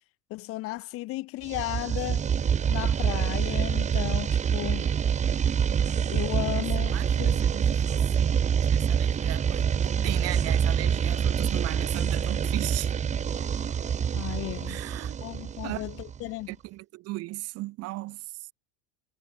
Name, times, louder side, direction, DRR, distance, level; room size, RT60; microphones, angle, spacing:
voice 1, 0.3-2.2 2.7-4.9 6.1-7.4 14.1-14.8 15.2-16.5, left 19 dB, 35° left, 1.4 m, -34 dB
sound 1, 1.5-16.3, right 7 dB, 20° right, 2.8 m, -26 dB
voice 2, 6.8-12.9 14.7-15.2 15.6-15.8 16.5-18.2, right 19 dB, 40° right, 3.4 m, -37 dB
supercardioid pair, 165°, 37 cm